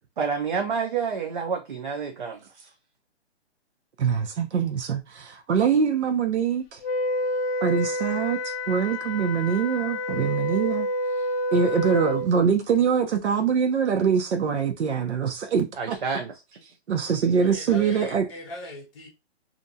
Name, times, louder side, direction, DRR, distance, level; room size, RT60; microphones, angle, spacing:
voice 1, 0.2-2.7 15.8-16.6, right 6 dB, 50° right, 0.4 m, -29 dB
voice 2, 4.0-6.8 7.6-10.9 11.5-16.0 16.9-18.3, right 6 dB, 90° right, 0.6 m, -24 dB
Wind instrument woodwind instrument, 6.8-12.3, left 1 dB, 65° left, 0.5 m, -28 dB
voice 3, 17.5-19.1, left 1 dB, 30° left, 0.7 m, -39 dB
2.6 x 2.2 x 2.6 m
hypercardioid pair, 165°, 33 cm